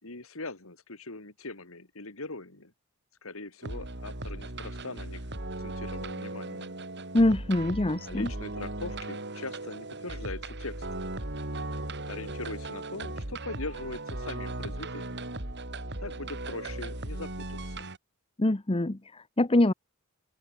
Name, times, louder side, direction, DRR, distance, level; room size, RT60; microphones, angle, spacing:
voice 1, 0.0-2.7 3.2-5.2 5.6-6.7 8.0-11.0 12.0-15.3 16.0-17.9, left 2 dB, 70° left, 3.2 m, -41 dB
sound 1, 3.6-18.0, right 2 dB, 55° right, 4.0 m, -37 dB
voice 2, 7.1-8.3 18.4-19.7, left 1 dB, 25° left, 1.0 m, -24 dB
open air
head